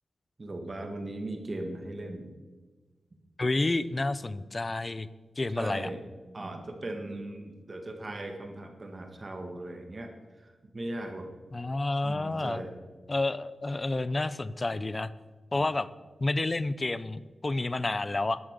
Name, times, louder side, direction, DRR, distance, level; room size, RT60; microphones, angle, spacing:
voice 1, 0.4-2.4 5.6-6.0 6.3-10.1 10.4-11.3 12.0-12.7 15.6-15.7, right 1 dB, 30° right, 4 dB, 1.6 m, -38 dB
voice 2, 3.4-5.1 5.4-5.9 11.5-12.6 13.1-15.1 15.5-15.9 16.2-18.4, left 2 dB, 25° left, 16 dB, 0.5 m, -30 dB
13.5 x 11.0 x 5.2 m, 1.3 s
wide cardioid pair, 170°, 0 cm